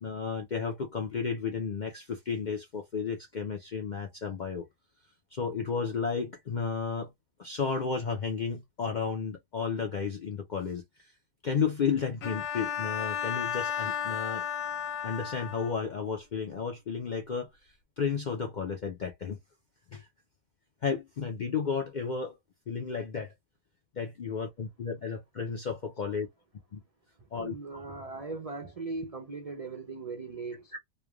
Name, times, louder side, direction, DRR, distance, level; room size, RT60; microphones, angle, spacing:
voice 1, 0.0-4.6 5.3-7.1 7.4-10.8 11.4-14.4 15.0-17.5 18.0-19.4 19.9-20.1 20.8-22.4 22.7-23.3 24.0-26.3 26.7-26.8 27.3-27.6 30.7-30.8, left 5 dB, 60° left, 0.5 m, -32 dB
Bowed string instrument, 12.2-15.9, left 8 dB, 85° left, 1.1 m, -33 dB
voice 2, 27.2-30.8, right 3 dB, 65° right, 0.3 m, -39 dB
3.1 x 2.2 x 2.2 m
omnidirectional pair, 1.4 m